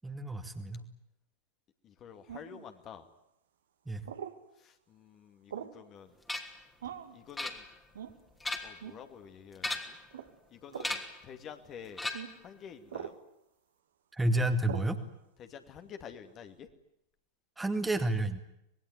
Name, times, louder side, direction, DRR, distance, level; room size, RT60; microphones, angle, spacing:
voice 1, 0.0-0.8 3.9-4.0 14.1-15.0 17.6-18.4, right 1 dB, 10° right, 7 dB, 2.1 m, -30 dB
voice 2, 1.8-3.1 4.6-6.1 6.8-7.6 8.6-10.0 10.5-12.0 12.4-13.2 15.4-16.7, left 8 dB, 30° left, 8 dB, 2.5 m, -49 dB
sound 1, 2.3-2.6 4.1-4.4 5.5-5.8 6.8-7.2 7.9-8.2 8.8-9.0 10.1-10.3 10.7-11.0 12.1-12.3 12.9-13.2 14.7-14.9, right 9 dB, 65° right, 2.2 m, -42 dB
sound 2, 6.3-6.6 7.4-8.0 8.3-8.9 9.6-10.1 10.8-11.2 12.0-12.5, left 2 dB, 10° left, 3.0 m, -37 dB
25.5 x 21.0 x 9.7 m, 0.82 s
figure-of-eight pair, 90°, 0 cm